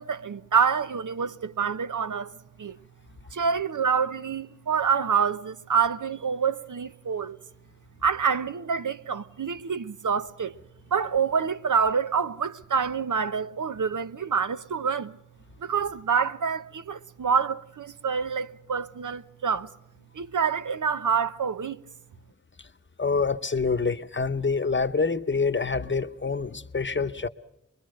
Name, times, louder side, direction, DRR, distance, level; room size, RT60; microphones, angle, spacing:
voice 1, 0.0-2.3 2.6-2.8 3.3-7.4 8.0-10.5 10.9-15.1 15.6-19.7 20.1-21.8, right 6 dB, 80° right, 0.7 m, -27 dB
voice 2, 23.0-27.3, left 4 dB, 40° left, 0.8 m, -26 dB
24.5 x 22.0 x 6.4 m
wide cardioid pair, 80°, 31 cm